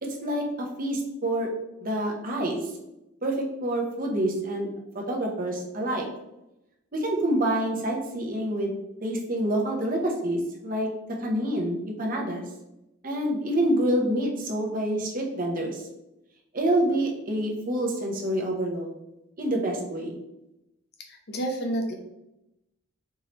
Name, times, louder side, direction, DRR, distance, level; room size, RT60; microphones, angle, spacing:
voice 1, 0.0-1.5 1.8-2.6 3.2-4.7 4.9-6.1 6.9-8.7 9.0-10.9 11.2-12.4 13.0-15.9 16.5-18.9 19.4-20.2, right 1 dB, 45° right, 0 dB, 0.8 m, -27 dB
voice 2, 21.3-22.0, right 1 dB, 50° left, 3 dB, 0.8 m, -28 dB
4.6 x 3.1 x 3.0 m, 0.90 s
head